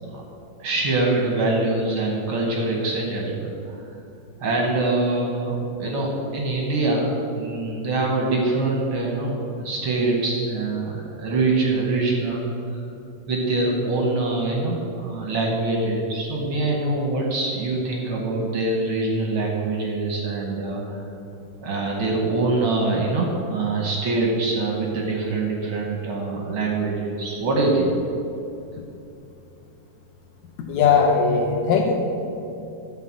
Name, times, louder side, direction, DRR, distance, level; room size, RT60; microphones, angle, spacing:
voice 1, 0.6-3.8 4.4-12.5 13.3-21.0 21.6-27.9, right 2 dB, 65° right, -1 dB, 1.3 m, -24 dB
voice 2, 30.7-32.0, left 5 dB, 75° left, 0 dB, 2.0 m, -19 dB
11.5 x 4.0 x 7.4 m, 2.8 s
omnidirectional pair, 3.6 m